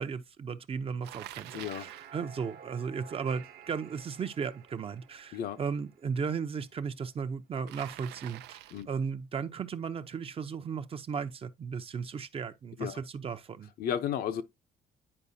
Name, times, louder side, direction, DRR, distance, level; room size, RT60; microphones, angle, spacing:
voice 1, 0.0-13.7, right 6 dB, 35° right, 0.6 m, -36 dB
Bicycle, 1.0-2.1 7.7-8.9, right 15 dB, 80° right, 0.5 m, -46 dB
sound 1, 1.3-6.9, right 8 dB, 65° right, 1.1 m, -53 dB
voice 2, 1.5-1.9 5.3-5.6 8.7-8.9 12.8-13.0 13.8-14.4, left 9 dB, 65° left, 0.8 m, -33 dB
9.8 x 4.8 x 2.7 m
cardioid pair, 110°, 17 cm